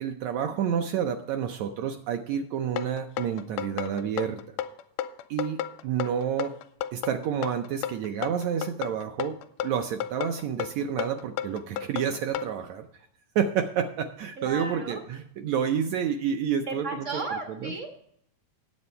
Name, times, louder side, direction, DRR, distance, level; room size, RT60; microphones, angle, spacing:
voice 1, 0.0-4.4 5.3-6.5 6.9-9.4 9.6-12.9 13.3-16.9 17.6-17.7, right 8 dB, 80° right, 6 dB, 1.6 m, -29 dB
sound 1, 2.8-12.5, left 10 dB, 85° left, 2.1 m, -33 dB
voice 2, 14.4-15.0 16.7-17.9, right 3 dB, 60° right, 3 dB, 0.7 m, -34 dB
9.5 x 8.0 x 5.5 m, 0.69 s
omnidirectional pair, 3.7 m